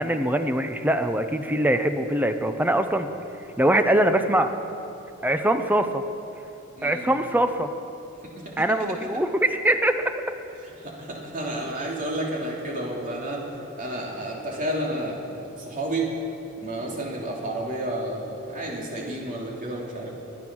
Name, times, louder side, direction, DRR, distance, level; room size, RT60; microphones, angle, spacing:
voice 1, 0.0-3.1 3.6-4.5 5.2-6.0 6.8-7.7 8.6-10.1, right 1 dB, 10° right, 8 dB, 0.6 m, -22 dB
voice 2, 6.8-7.1 8.4-8.5 10.6-13.4 13.8-15.2 15.6-16.1 16.6-20.1, right 1 dB, 40° right, -2 dB, 2.9 m, -31 dB
23.0 x 8.9 x 6.2 m, 2.8 s
head